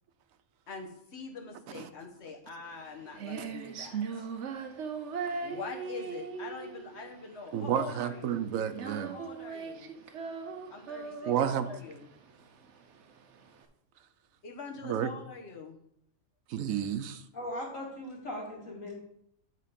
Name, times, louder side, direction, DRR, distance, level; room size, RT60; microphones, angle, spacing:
voice 1, 0.7-4.3 5.4-8.5 8.8-9.9 10.7-12.1 14.4-15.8, left 4 dB, 55° left, 1 dB, 1.4 m, -44 dB
Female singing, 2.7-13.6, right 5 dB, 65° right, 1.0 m, -39 dB
voice 2, 7.5-9.2 11.3-11.7 14.8-15.1 16.5-17.2, right 9 dB, 85° right, 10 dB, 1.1 m, -30 dB
voice 3, 17.3-19.0, left 1 dB, 80° left, -2 dB, 2.6 m, -39 dB
9.4 x 3.8 x 5.2 m, 0.74 s
omnidirectional pair, 1.4 m